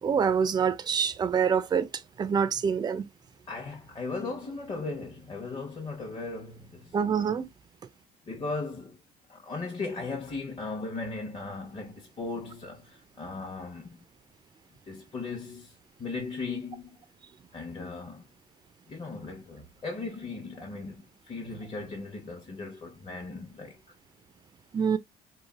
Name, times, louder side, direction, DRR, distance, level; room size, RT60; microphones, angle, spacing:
voice 1, 0.0-1.9 2.2-3.1 6.9-7.5 24.7-25.0, right 6 dB, 25° right, 0.4 m, -26 dB
voice 2, 3.5-7.0 8.3-9.0 9.3-14.0 14.8-17.0 17.5-18.3 18.9-23.8, left 3 dB, 30° left, 0.9 m, -37 dB
3.3 x 2.4 x 2.3 m
cardioid pair, 110°, 17 cm